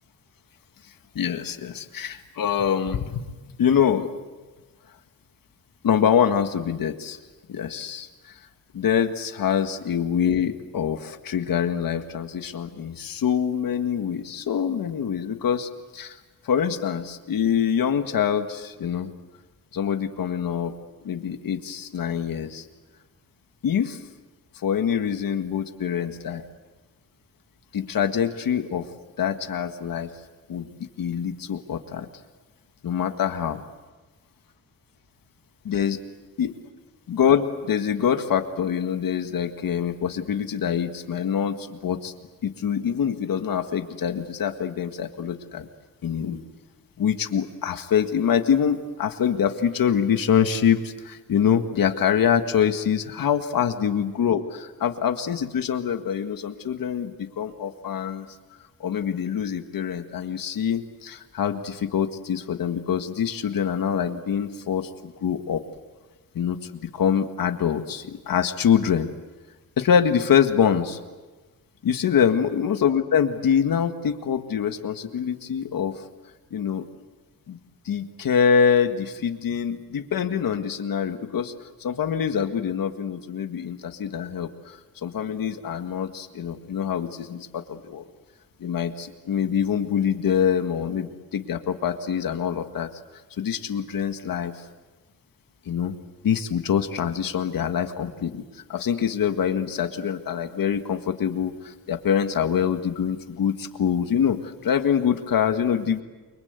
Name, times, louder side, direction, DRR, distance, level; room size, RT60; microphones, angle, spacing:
voice 1, 1.2-3.3 3.6-4.1 5.8-7.2 7.5-8.1 8.7-16.2 16.4-19.1 19.7-20.7 21.0-22.7 23.6-24.0 24.6-26.4 27.7-28.9 29.2-30.1 30.5-30.7 31.0-32.1 32.8-33.6 35.7-36.0 36.4-36.6 37.1-42.1 42.4-45.7 46.0-46.4 47.0-58.3 58.8-65.6 66.4-66.6 66.9-69.1 69.8-71.0 71.8-75.9 76.5-76.8 77.5-77.6 77.9-81.5 81.8-88.0 88.6-92.9 93.4-94.5 95.7-95.9 96.2-98.4 98.7-106.0, left 8 dB, 75° left, 7 dB, 1.8 m, -25 dB
29.5 x 24.0 x 8.2 m, 1.2 s
wide cardioid pair, 170°, 35 cm